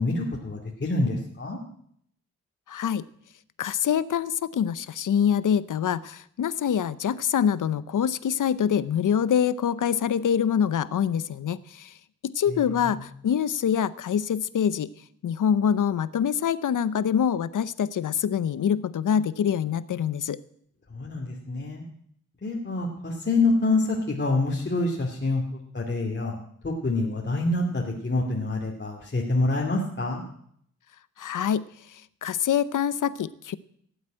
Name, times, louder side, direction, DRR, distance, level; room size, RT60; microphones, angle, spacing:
voice 1, 0.0-1.6 12.5-13.0 20.9-21.8 22.4-26.4 26.6-30.2, left 2 dB, 35° left, -1 dB, 2.4 m, -26 dB
voice 2, 2.7-3.0 3.6-11.9 12.2-14.9 15.2-20.4 31.2-33.6, left 8 dB, 75° left, 17 dB, 0.8 m, -25 dB
17.0 x 8.1 x 8.9 m, 0.68 s
cardioid pair, 75°, 32 cm